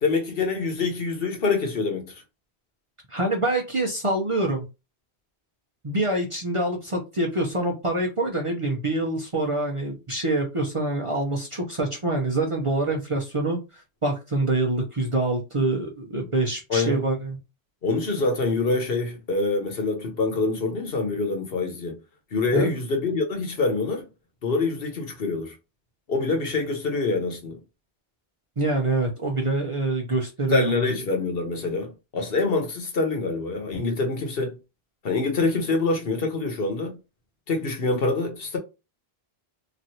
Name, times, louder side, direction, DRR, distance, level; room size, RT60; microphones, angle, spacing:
voice 1, 0.0-2.2 16.7-17.0 17.8-22.0 22.3-24.0 24.4-25.5 26.1-27.6 30.5-34.5 35.0-37.0 37.5-38.6, left 3 dB, 60° left, 1.1 m, -25 dB
voice 2, 3.1-4.7 5.8-17.4 22.5-22.7 28.6-30.8, right 2 dB, 35° right, 0.6 m, -25 dB
3.0 x 2.6 x 2.7 m
omnidirectional pair, 1.1 m